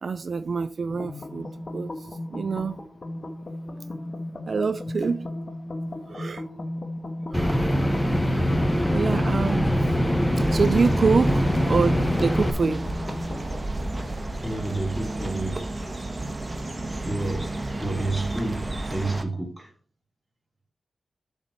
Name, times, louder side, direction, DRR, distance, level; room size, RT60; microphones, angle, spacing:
voice 1, 0.0-2.8 4.5-5.3 6.1-6.4 7.3-7.7 8.9-9.8 10.5-12.9, right 5 dB, 65° right, 0.4 m, -26 dB
sound 1, 0.9-13.6, left 1 dB, 50° left, 1.3 m, -35 dB
sound 2, 7.3-12.5, equal, 10° left, 1.2 m, -23 dB
sound 3, 10.3-19.2, right 2 dB, 30° right, 1.3 m, -32 dB
voice 2, 14.4-15.6 17.0-19.7, right 2 dB, 5° right, 3.5 m, -30 dB
7.4 x 4.1 x 6.6 m
cardioid pair, 55°, 0 cm